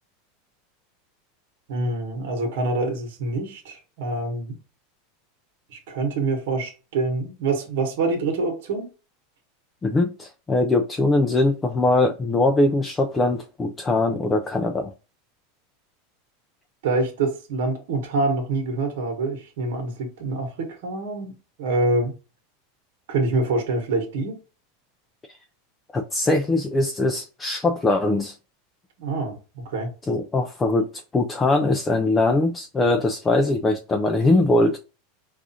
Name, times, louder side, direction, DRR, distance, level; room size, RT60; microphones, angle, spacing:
voice 1, 1.7-4.6 5.7-8.9 16.8-21.3 21.6-22.1 23.1-24.4 29.0-29.9, right 3 dB, 75° right, 1.1 m, -26 dB
voice 2, 9.8-14.9 25.9-28.3 30.1-30.9 31.1-34.8, left 2 dB, 15° left, 0.3 m, -21 dB
4.8 x 2.4 x 2.7 m
supercardioid pair, 150°, 0 cm